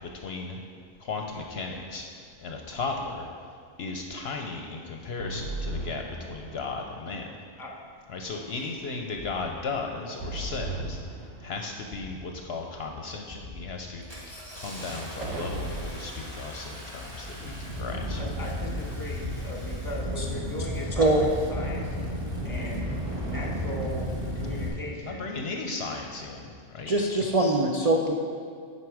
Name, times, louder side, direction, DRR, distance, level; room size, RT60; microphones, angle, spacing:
voice 1, 0.0-0.6 1.0-7.3 8.1-18.2 25.0-26.9, left 3 dB, 60° left, 2 dB, 0.8 m, -36 dB
sound 1, 1.1-1.9 5.2-6.9 10.2-11.9 15.2-16.1, right 2 dB, 90° right, 1.2 m, -37 dB
Engine starting, 8.3-8.4 9.2-9.5 10.2-10.5 10.9-11.4 11.8-12.4 12.8-13.0 13.3-24.7, equal, 20° right, 1.5 m, -34 dB
voice 2, 18.2-22.0 22.4-22.9 23.2-24.1 24.3-25.3, left 1 dB, 15° left, -2 dB, 1.2 m, -38 dB
voice 3, 21.0-21.3 26.9-28.1, right 2 dB, 45° right, 0 dB, 0.5 m, -23 dB
9.4 x 5.7 x 4.7 m, 2.2 s
omnidirectional pair, 1.3 m